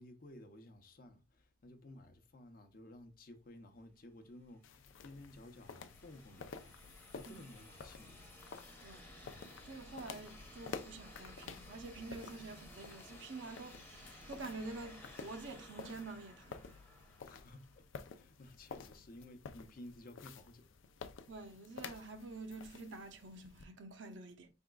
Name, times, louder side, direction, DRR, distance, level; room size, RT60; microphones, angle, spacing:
voice 1, 0.0-8.3 17.2-20.7, left 1 dB, 50° left, 0.6 m, -55 dB
sound 1, 4.4-18.1, left 1 dB, 10° left, 0.8 m, -56 dB
sound 2, 4.6-23.6, left 5 dB, 85° left, 0.4 m, -52 dB
voice 2, 8.8-9.2 9.6-16.6 21.3-24.5, right 3 dB, 70° right, 0.6 m, -48 dB
4.9 x 3.5 x 2.2 m
head